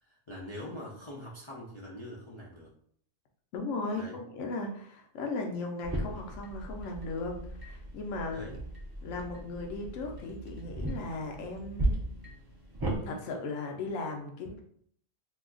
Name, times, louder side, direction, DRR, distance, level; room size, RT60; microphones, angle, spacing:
voice 1, 0.0-2.7 3.9-4.2 8.3-8.6, left 1 dB, 55° left, -5 dB, 0.3 m, -43 dB
voice 2, 3.5-8.5 9.0-11.9 13.0-14.6, left 3 dB, 80° left, 2 dB, 1.0 m, -37 dB
sound 1, 5.8-13.0, right 2 dB, 35° right, 0.3 m, -36 dB
2.8 x 2.3 x 3.7 m, 0.64 s
omnidirectional pair, 1.4 m